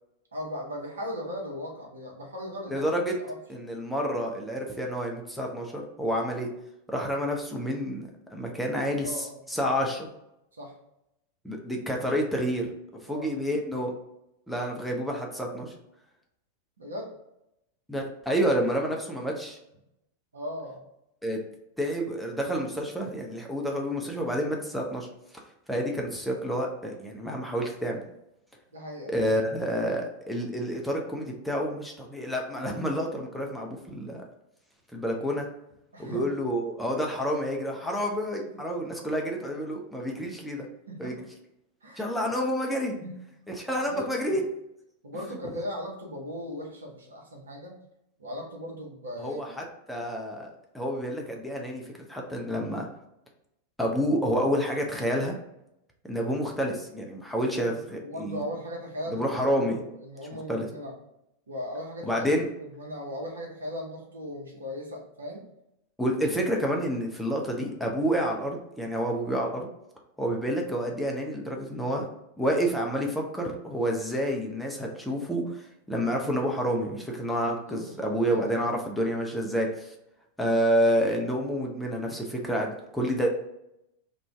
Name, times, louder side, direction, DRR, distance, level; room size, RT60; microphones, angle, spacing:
voice 1, 0.3-2.9 3.2-3.4 8.6-9.4 10.6-10.8 13.1-13.3 16.8-17.1 20.3-20.8 28.7-29.3 35.9-36.3 38.5-38.7 40.9-41.2 41.8-42.1 42.9-43.2 43.9-44.4 45.0-47.8 48.2-49.6 57.5-57.7 58.0-60.9 61.5-65.4 77.7-78.7, equal, 70° right, -1 dB, 0.8 m, -38 dB
voice 2, 2.7-3.1 3.5-6.5 6.9-9.1 9.5-10.1 11.4-12.7 13.0-13.9 14.5-15.7 17.9-19.6 21.2-21.4 21.8-25.1 25.7-28.0 29.1-34.2 34.9-35.5 36.0-40.7 41.0-41.1 42.0-42.9 43.6-44.4 49.2-50.5 50.7-51.8 52.1-52.9 53.8-55.4 56.1-58.4 59.1-59.8 60.5-60.7 62.0-62.5 66.0-69.7 70.2-72.1 72.4-79.9 80.4-83.3, equal, ahead, -1 dB, 0.5 m, -29 dB
2.5 x 2.2 x 3.2 m, 0.83 s
figure-of-eight pair, 90°, 0 cm